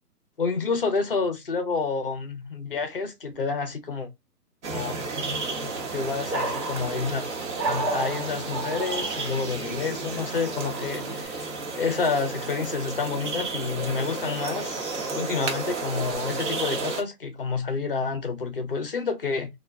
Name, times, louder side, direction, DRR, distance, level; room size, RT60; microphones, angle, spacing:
voice 1, 0.4-4.1 4.7-5.0 5.9-7.3 7.7-11.4 11.8-19.5, left 4 dB, 35° left, 0.5 m, -29 dB
sound 1, 4.6-17.0, right 3 dB, 45° right, 0.9 m, -32 dB
sound 2, 5.5-11.3, right 2 dB, 80° right, 1.1 m, -34 dB
2.3 x 2.1 x 3.3 m
hypercardioid pair, 155°, 49 cm